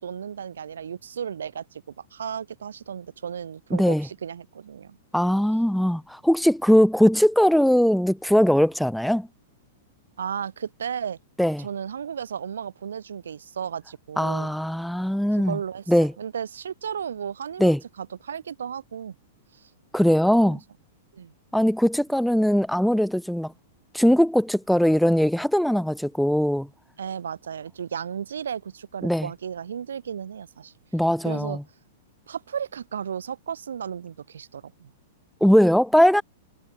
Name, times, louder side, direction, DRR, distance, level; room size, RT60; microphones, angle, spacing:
voice 1, 0.0-5.0 10.2-11.2 11.6-14.5 15.3-15.8 16.2-17.7 18.0-19.2 20.4-20.6 21.1-21.3 27.0-30.7 31.2-31.6 32.3-34.9, right 8 dB, 65° right, 0.7 m, -34 dB
voice 2, 3.7-4.1 5.1-9.3 11.4-11.7 14.2-15.6 15.9-16.1 17.6-17.8 19.9-20.6 21.5-23.5 23.9-26.7 29.0-29.3 30.9-31.6 35.4-36.2, equal, ahead, 0.5 m, -20 dB
figure-of-eight pair, 100°, 0 cm